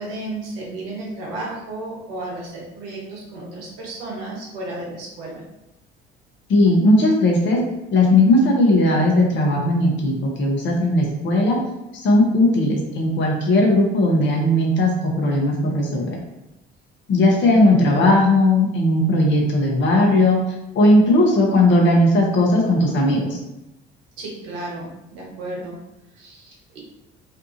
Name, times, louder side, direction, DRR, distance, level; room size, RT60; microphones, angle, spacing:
voice 1, 0.0-5.4 17.4-18.0 24.2-25.7 26.1-26.8, right 2 dB, 75° right, -3 dB, 0.9 m, -33 dB
voice 2, 6.5-7.6 7.9-11.6 11.9-16.2 17.1-20.4 20.7-23.4, left 1 dB, 40° left, -1 dB, 0.7 m, -17 dB
2.6 x 2.3 x 2.6 m, 0.92 s
hypercardioid pair, 55°, 29 cm